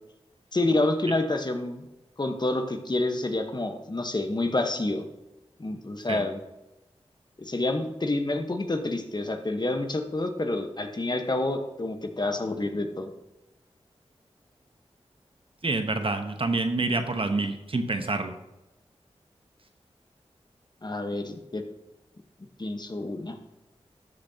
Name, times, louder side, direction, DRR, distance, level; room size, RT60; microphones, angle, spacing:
voice 1, 0.5-1.8 2.2-5.0 5.6-6.4 7.4-13.1 20.8-21.6 22.6-23.4, left 2 dB, 40° left, 6 dB, 1.1 m, -28 dB
voice 2, 15.6-18.3, right 3 dB, 50° right, 7 dB, 1.0 m, -27 dB
13.5 x 6.9 x 2.8 m, 0.99 s
cardioid pair, 45°, 11 cm